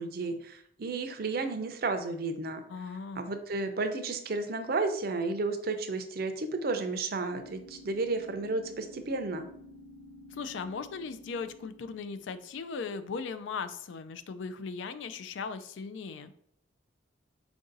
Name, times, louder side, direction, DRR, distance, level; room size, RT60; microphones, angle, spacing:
voice 1, 0.0-2.6 3.2-9.5, right 3 dB, 50° right, 7 dB, 0.5 m, -32 dB
voice 2, 2.7-3.2 10.3-16.3, left 5 dB, 75° left, 12 dB, 0.4 m, -38 dB
sound 1, 7.3-13.1, left 1 dB, 25° left, 0.6 m, -52 dB
4.7 x 2.6 x 3.8 m, 0.68 s
head